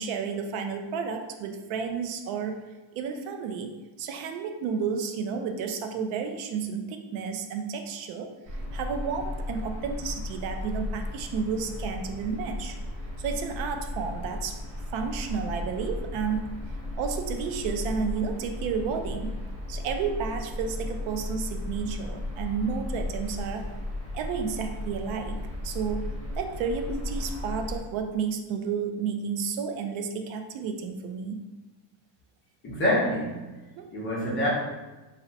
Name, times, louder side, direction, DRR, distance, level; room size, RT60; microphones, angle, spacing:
voice 1, 0.0-2.5 2.9-3.7 4.0-12.8 13.2-14.6 14.9-16.5 17.0-19.4 19.7-23.7 24.1-25.4 25.6-26.0 26.4-31.4 33.8-33.9, right 6 dB, 80° right, 5 dB, 0.5 m, -31 dB
sound 1, 8.4-27.8, left 1 dB, 5° right, 1.1 m, -35 dB
voice 2, 32.6-33.4 33.9-34.5, left 1 dB, 25° left, -6 dB, 0.6 m, -26 dB
2.7 x 2.1 x 3.8 m, 1.2 s
cardioid pair, 175°, 48 cm